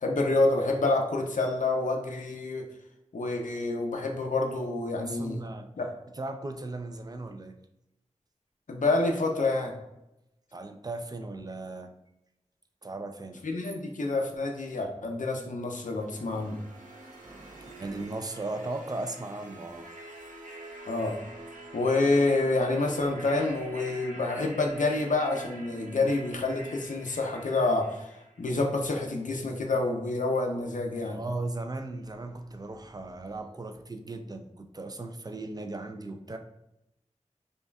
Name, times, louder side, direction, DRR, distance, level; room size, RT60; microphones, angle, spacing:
voice 1, 0.0-2.6 3.1-5.4 5.8-5.9 8.7-9.7 13.4-16.6 20.9-21.1 21.7-28.1 28.4-31.2, left 2 dB, 80° left, 2 dB, 0.6 m, -28 dB
voice 2, 5.0-5.7 6.1-7.5 10.5-11.9 12.8-13.4 17.2-19.9 30.9-36.4, right 2 dB, 30° right, 6 dB, 0.4 m, -37 dB
sound 1, 15.8-28.8, right 1 dB, 85° right, 0.7 m, -46 dB
5.2 x 2.3 x 2.3 m, 0.88 s
wide cardioid pair, 55°, 13 cm